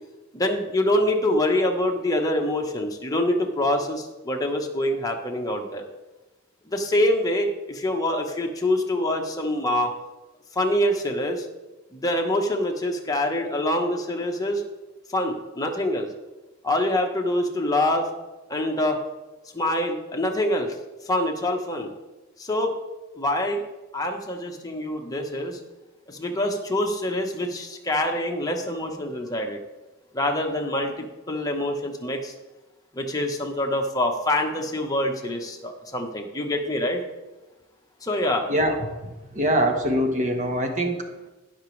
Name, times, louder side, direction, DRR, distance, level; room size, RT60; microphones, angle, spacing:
voice 1, 0.3-5.8 6.7-9.9 10.5-11.4 11.9-14.6 15.1-16.1 16.6-18.1 18.5-19.0 19.5-20.7 21.1-21.9 22.4-22.8 23.2-23.6 23.9-25.6 26.1-29.6 30.1-32.3 32.9-37.0 38.0-38.5, left 1 dB, 20° left, 1 dB, 1.2 m, -25 dB
voice 2, 39.0-41.0, equal, 35° right, 4 dB, 1.4 m, -23 dB
18.0 x 6.1 x 3.3 m, 1.1 s
head